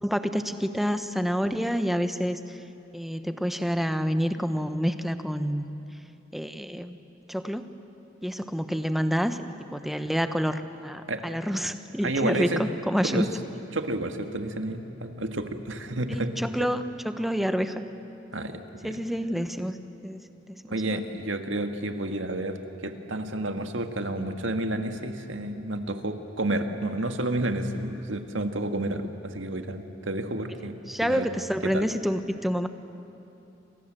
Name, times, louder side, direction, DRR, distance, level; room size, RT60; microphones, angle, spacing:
voice 1, 0.0-2.6 2.9-5.6 6.3-7.0 7.3-7.7 8.2-9.4 9.7-13.3 16.1-17.8 18.8-19.8 20.0-21.0 30.9-32.7, equal, ahead, 9 dB, 1.0 m, -28 dB
voice 2, 12.0-12.6 13.0-13.3 13.7-16.3 16.6-16.7 18.3-19.0 20.7-22.6 22.8-31.3 31.6-31.9, right 1 dB, 85° right, 6 dB, 1.9 m, -30 dB
29.0 x 26.5 x 7.8 m, 2.8 s
head